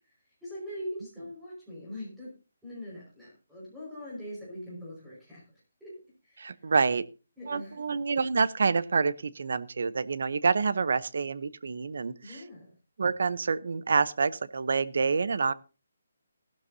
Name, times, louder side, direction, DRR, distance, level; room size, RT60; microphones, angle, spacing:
voice 1, 0.4-2.3 2.6-5.4 5.8-5.9 6.2-6.7 7.4-7.8 12.2-12.7, equal, 5° right, -7 dB, 5.2 m, -42 dB
voice 2, 6.4-7.1 7.5-12.4 13.0-15.5, right 5 dB, 55° right, 18 dB, 0.8 m, -27 dB
16.0 x 12.0 x 2.7 m, 0.31 s
hypercardioid pair, 175°, 0 cm